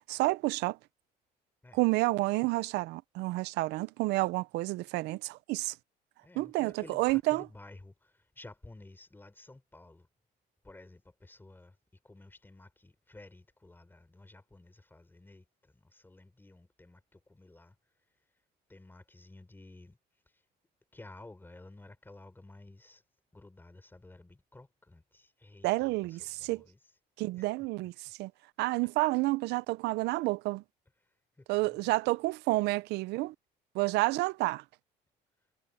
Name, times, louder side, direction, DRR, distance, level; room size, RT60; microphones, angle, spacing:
voice 1, 0.1-0.8 1.7-5.7 6.4-7.4 25.6-26.6 27.2-28.3 28.6-30.6 31.5-33.3 33.7-34.6, right 21 dB, 90° right, 0.5 m, -30 dB
voice 2, 6.2-10.1 10.6-11.8 12.0-17.8 18.7-20.0 20.3-20.4 20.9-23.0 23.3-26.9 27.4-27.5 31.0-31.9, left 2 dB, 10° left, 4.0 m, -54 dB
cardioid pair, 110°, 17 cm